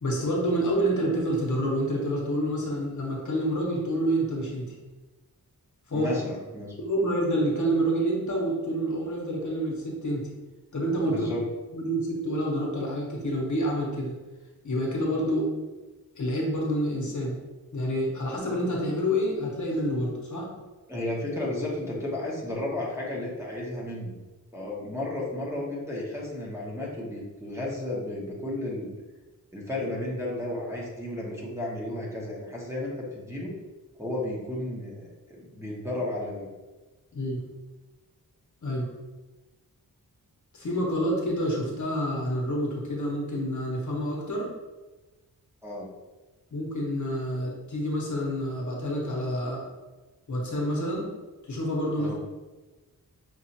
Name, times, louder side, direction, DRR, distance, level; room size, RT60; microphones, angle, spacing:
voice 1, 0.0-4.7 5.9-6.1 6.8-10.3 10.7-11.3 11.7-14.1 14.6-15.5 16.1-17.4 17.7-20.5 37.1-37.4 38.6-38.9 40.5-44.5 46.5-49.6 50.3-51.1 51.4-52.1, equal, 55° left, -2 dB, 0.9 m, -28 dB
voice 2, 5.9-6.7 11.1-11.4 20.9-24.2 24.5-28.9 29.5-33.5 34.0-35.0 35.3-36.5 45.6-45.9 52.0-52.2, left 1 dB, 10° right, -6 dB, 0.8 m, -33 dB
5.2 x 2.4 x 2.8 m, 1.2 s
wide cardioid pair, 125°, 36 cm